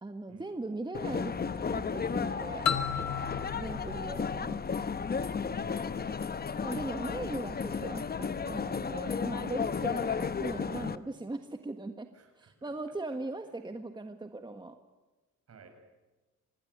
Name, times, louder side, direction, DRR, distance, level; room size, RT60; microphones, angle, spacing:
voice 1, 0.0-2.7 3.5-5.0 6.6-12.1 12.4-14.7, right 2 dB, 15° right, 6 dB, 1.5 m, -39 dB
sound 1, 0.9-11.0, left 6 dB, 30° left, 1.1 m, -33 dB
voice 2, 2.1-2.6 2.9-4.2 5.4-6.7 7.7-7.9 10.7-10.9 12.1-12.7 15.5-15.7, right 5 dB, 55° right, 5 dB, 7.4 m, -54 dB
sound 2, 2.7-5.4, left 7 dB, 65° left, 1.3 m, -34 dB
26.5 x 18.5 x 10.0 m, 1.2 s
cardioid pair, 90°, 30 cm